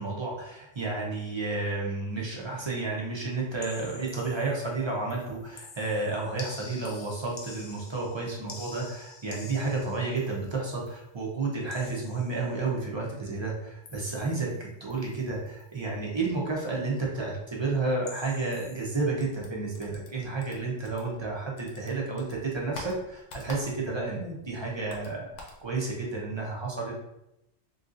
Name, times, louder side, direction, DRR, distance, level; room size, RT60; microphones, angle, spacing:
voice 1, 0.0-27.0, right 3 dB, 40° right, -3 dB, 0.4 m, -31 dB
sound 1, 3.6-4.8 5.1-11.0 11.7-12.6 13.8-14.6 14.9-15.2 15.5-15.7 18.0-18.9, left 4 dB, 55° left, 0.6 m, -48 dB
sound 2, 19.2-21.3 21.6-24.1 24.3-25.6, left 2 dB, 80° left, 1.0 m, -45 dB
3.6 x 2.7 x 2.5 m, 0.86 s
omnidirectional pair, 1.2 m